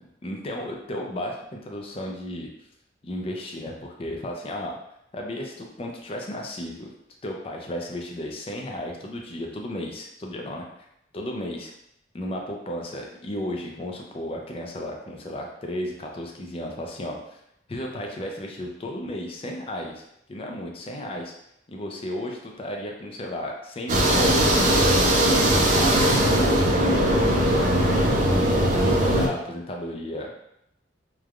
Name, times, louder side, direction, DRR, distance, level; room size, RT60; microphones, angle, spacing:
voice 1, 0.2-2.5 3.0-4.8 5.1-6.9 7.2-10.7 11.1-11.7 12.1-17.4 17.7-20.0 20.3-21.3 21.7-25.3 25.7-28.3 28.8-30.3, left 1 dB, 30° left, 0 dB, 0.4 m, -34 dB
sound 1, 23.9-29.3, right 1 dB, 40° right, 0.4 m, -20 dB
3.1 x 2.2 x 2.4 m, 0.78 s
head